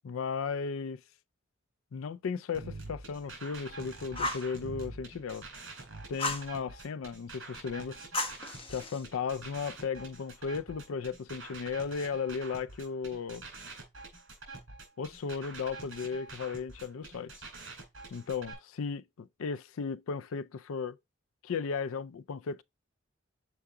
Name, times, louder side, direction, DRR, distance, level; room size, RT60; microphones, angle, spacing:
voice 1, 0.0-1.0 1.9-5.5 6.1-8.0 8.7-13.4 15.0-17.4 18.1-21.0 21.4-22.6, left 5 dB, 85° left, 0.4 m, -35 dB
sound 1, 2.5-18.5, right 3 dB, 70° right, 4.2 m, -46 dB
Fire, 4.1-4.5 6.2-6.5 8.1-9.1, left 2 dB, 30° left, 1.2 m, -34 dB
6.9 x 4.7 x 3.7 m
head